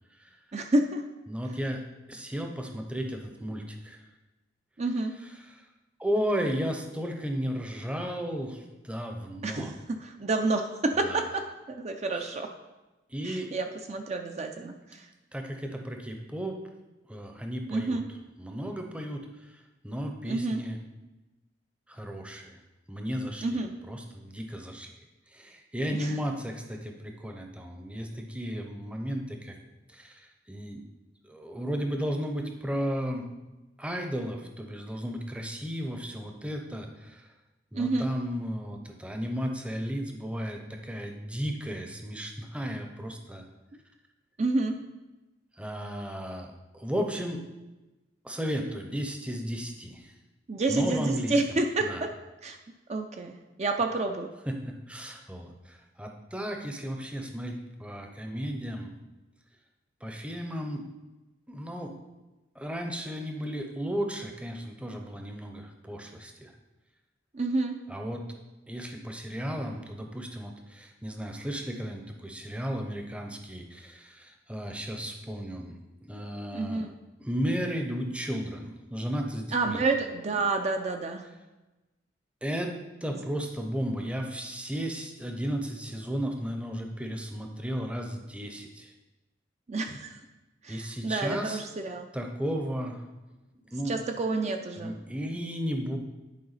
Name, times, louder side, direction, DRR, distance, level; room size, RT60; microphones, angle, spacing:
voice 1, 0.5-1.0 4.8-5.1 9.4-12.5 13.2-15.1 17.7-18.0 20.2-20.6 23.4-23.7 25.9-26.1 37.7-38.1 44.4-44.8 50.5-52.1 52.4-52.6 52.9-54.3 67.3-67.8 76.5-76.9 79.5-81.3 89.7-90.2 90.6-92.1 93.9-95.0, right 2 dB, 40° right, 5 dB, 0.5 m, -29 dB
voice 2, 1.3-1.8 2.1-4.1 5.5-5.7 6.0-9.7 11.0-11.2 12.2-12.3 13.1-13.5 15.3-16.6 17.1-18.0 18.4-19.6 19.8-20.8 21.9-22.6 22.9-24.9 25.3-29.6 29.9-30.8 31.2-33.3 33.8-37.3 37.7-43.5 45.6-47.4 48.2-50.1 50.7-52.0 54.5-58.9 60.0-60.8 61.5-61.9 62.5-66.5 67.9-68.2 68.7-76.9 77.2-79.8 82.4-82.7 83.0-88.9 90.7-91.6 92.1-93.0 93.7-94.0 94.8-96.0, equal, 5° right, 3 dB, 0.7 m, -34 dB
10.5 x 4.7 x 4.1 m, 1.1 s
head